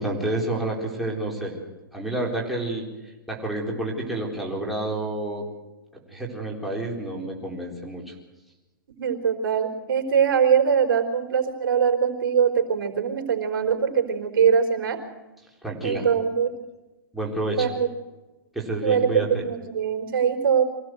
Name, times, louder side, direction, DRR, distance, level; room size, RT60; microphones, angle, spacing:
voice 1, 0.0-1.6 1.9-2.9 3.3-5.4 6.1-8.1 15.6-16.1 17.1-17.7 18.5-19.4, right 2 dB, ahead, -3 dB, 4.2 m, -29 dB
voice 2, 8.9-15.0 15.8-16.5 17.5-17.9 18.8-20.6, right 7 dB, 85° right, 4 dB, 4.2 m, -22 dB
24.5 x 16.5 x 7.9 m, 1.1 s
hypercardioid pair, 155°, 11 cm